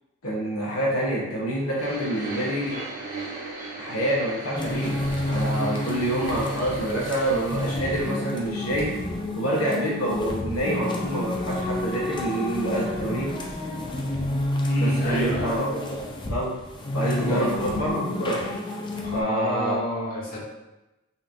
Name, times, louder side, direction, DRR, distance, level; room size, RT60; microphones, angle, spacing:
voice 1, 0.2-2.8 3.8-5.0 5.3-8.9 9.4-13.3 14.8-15.7 16.3-16.5 16.9-18.4 19.1-19.8, right 1 dB, 85° left, -4 dB, 1.0 m, -27 dB
sound 1, 1.8-8.5 8.8-8.9 9.7-9.8, right 2 dB, 40° right, 1.4 m, -38 dB
sound 2, 4.6-19.2, left 1 dB, 20° left, 0.4 m, -30 dB
voice 2, 14.7-15.6 17.0-17.5 19.0-20.4, left 1 dB, 40° left, -7 dB, 1.3 m, -29 dB
5.5 x 3.0 x 2.6 m, 1.0 s
head